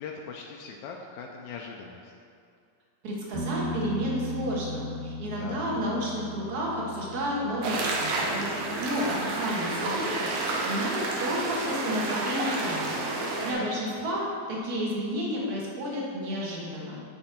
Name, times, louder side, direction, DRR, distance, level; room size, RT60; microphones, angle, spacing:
voice 1, 0.0-2.1 5.3-5.7 13.5-13.8, left 5 dB, 85° left, 0 dB, 1.9 m, -41 dB
voice 2, 3.0-17.0, equal, 45° right, -4 dB, 1.3 m, -31 dB
sound 1, 3.3-10.9 14.0-14.1, left 1 dB, 70° right, 2.7 m, -39 dB
sound 2, 7.6-13.5, right 2 dB, 85° right, 2.4 m, -30 dB
10.5 x 4.4 x 4.4 m, 2.3 s
omnidirectional pair, 3.3 m